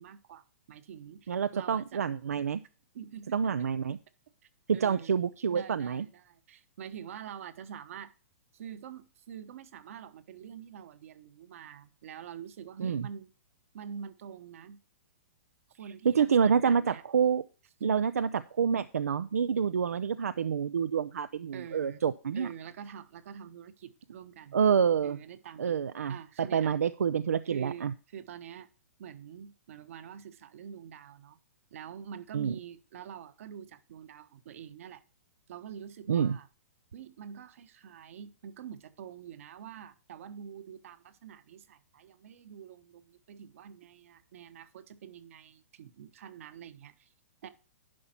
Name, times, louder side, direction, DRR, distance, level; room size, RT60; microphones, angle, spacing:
voice 1, 0.0-2.0 2.9-3.5 4.7-5.1 5.5-8.1 8.5-13.3 13.7-14.8 15.8-17.0 17.8-18.1 21.5-22.0 22.3-24.6 25.0-25.8 26.1-26.8 27.5-28.7 29.0-31.4 31.7-35.0 35.5-36.5 36.9-47.1 47.4-47.5, right 8 dB, 65° right, 1.2 m, -46 dB
voice 2, 1.3-2.6 3.3-4.0 4.7-6.1 12.8-13.1 16.0-17.4 17.8-22.5 24.5-25.2 25.6-26.2 26.5-27.9 32.3-32.5 36.1-36.4, right 7 dB, 85° right, 0.5 m, -27 dB
11.0 x 5.7 x 4.4 m
hypercardioid pair, 130°, 8 cm